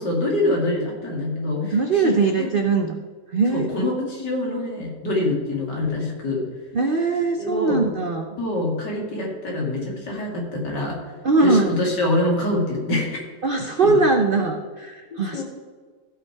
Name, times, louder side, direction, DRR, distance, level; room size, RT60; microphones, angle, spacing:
voice 1, 0.0-2.5 3.5-6.4 7.4-7.8 8.4-11.1 11.4-13.3 13.8-14.0 15.3-15.4, left 2 dB, 70° left, -1 dB, 3.1 m, -25 dB
voice 2, 1.7-3.0 3.3-3.7 6.7-8.4 11.2-11.7 13.4-15.4, right 3 dB, 55° right, 4 dB, 0.6 m, -21 dB
15.5 x 5.8 x 4.6 m, 1.5 s
omnidirectional pair, 1.9 m